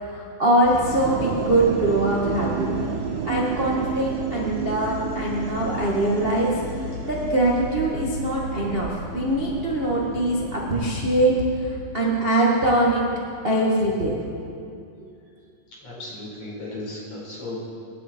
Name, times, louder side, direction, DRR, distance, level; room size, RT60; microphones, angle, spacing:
voice 1, 0.0-2.9 3.3-11.3 11.6-13.0 13.4-14.2, right 1 dB, 25° right, -4 dB, 1.4 m, -23 dB
sound 1, 0.6-11.4, equal, 75° left, 5.5 m, -35 dB
sound 2, 1.0-8.6, right 7 dB, 90° right, 2.3 m, -32 dB
voice 2, 15.8-17.6, left 2 dB, 50° left, -6 dB, 6.0 m, -35 dB
26.0 x 11.5 x 4.6 m, 2.5 s
omnidirectional pair, 3.9 m